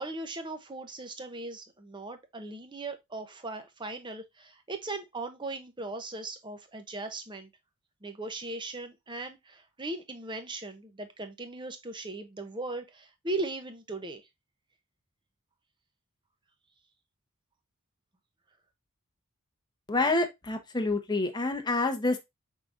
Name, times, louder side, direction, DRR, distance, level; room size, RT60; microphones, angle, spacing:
voice 1, 0.0-7.5 8.0-14.3, right 2 dB, 20° right, 0.7 m, -38 dB
voice 2, 19.9-22.2, left 2 dB, 20° left, 0.8 m, -27 dB
5.7 x 3.7 x 2.5 m
head